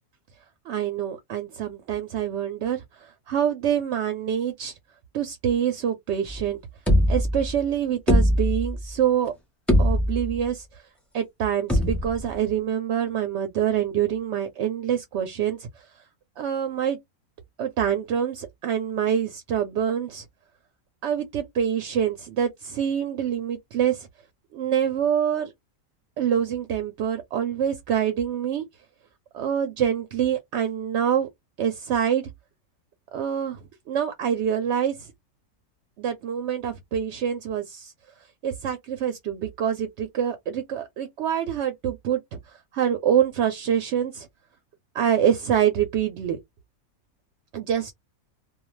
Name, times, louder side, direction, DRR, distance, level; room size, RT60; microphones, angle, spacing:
voice 1, 0.7-4.7 5.1-6.6 7.1-9.3 9.8-10.8 11.1-15.7 16.4-17.0 17.6-20.2 21.0-24.1 24.5-25.5 26.2-28.6 29.3-31.3 31.6-32.3 33.1-33.6 33.9-35.1 36.0-37.9 38.4-44.3 44.9-46.4 47.5-47.9, right 9 dB, 65° right, 0.7 m, -26 dB
sound 1, 6.3-6.4 6.9-7.6 8.1-8.9 9.3-9.4 9.7-10.4 11.7-12.3, equal, ahead, 0.5 m, -21 dB
2.3 x 2.2 x 3.1 m
omnidirectional pair, 1.5 m